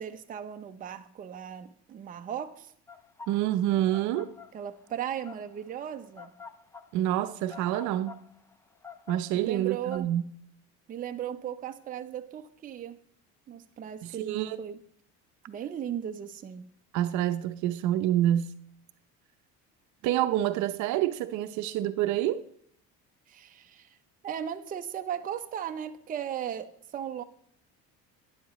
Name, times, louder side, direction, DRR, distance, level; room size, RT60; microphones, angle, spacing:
voice 1, 0.0-2.7 4.5-6.3 9.3-10.1 10.9-13.0 13.5-14.8 15.5-16.6 23.3-24.0 24.2-27.2, right 9 dB, 25° right, 0.6 m, -37 dB
sound 1, 2.9-10.0, left 6 dB, 10° left, 0.3 m, -48 dB
voice 2, 3.3-4.3 6.9-8.2 9.1-10.2 14.0-14.6 16.9-18.5 20.0-22.4, right 12 dB, 65° right, 0.7 m, -27 dB
12.5 x 9.7 x 3.1 m
cardioid pair, 150°, 31 cm